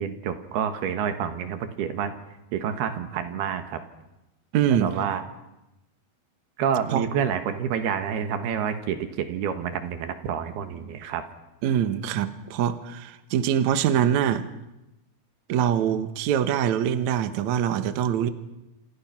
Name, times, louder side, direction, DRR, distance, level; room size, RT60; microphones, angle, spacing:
voice 1, 0.0-2.1 2.5-3.8 4.7-5.2 6.6-11.2, right 8 dB, 80° right, 8 dB, 3.6 m, -28 dB
voice 2, 4.5-4.9 6.9-7.1 11.6-14.5 15.5-18.3, right 9 dB, 65° right, 10 dB, 2.1 m, -24 dB
27.5 x 27.5 x 5.9 m, 0.95 s
omnidirectional pair, 4.5 m